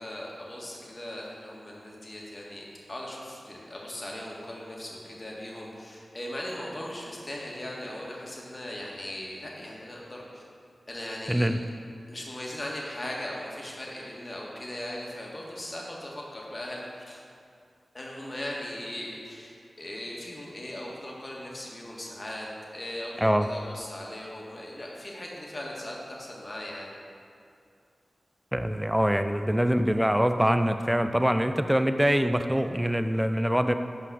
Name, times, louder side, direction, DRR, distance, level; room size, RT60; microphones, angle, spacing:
voice 1, 0.0-10.4 10.9-11.5 12.1-17.2 17.9-22.5 22.7-26.9, left 1 dB, 40° left, -3 dB, 1.6 m, -38 dB
voice 2, 11.3-11.6 23.2-23.5 28.5-33.7, equal, 5° right, 8 dB, 0.4 m, -24 dB
5.7 x 5.2 x 6.2 m, 2.4 s
cardioid pair, 40°, 0 cm